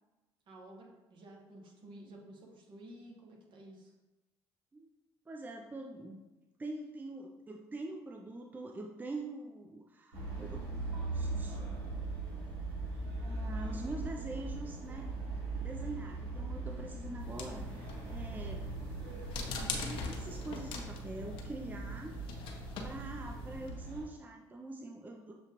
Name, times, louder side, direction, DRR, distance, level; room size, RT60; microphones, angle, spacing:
voice 1, 0.5-3.9, right 1 dB, 60° right, 0 dB, 1.1 m, -52 dB
voice 2, 5.3-6.2 6.6-11.7 13.2-15.1 15.6-18.7 19.8-22.1 22.8-25.3, right 2 dB, 20° right, 2 dB, 0.4 m, -44 dB
sound 1, 10.1-24.1, right 3 dB, 80° right, 1.1 m, -40 dB
sound 2, 17.2-23.7, left 4 dB, 65° left, 0.7 m, -43 dB
6.8 x 2.4 x 2.9 m, 1.1 s
supercardioid pair, 70°, 9 cm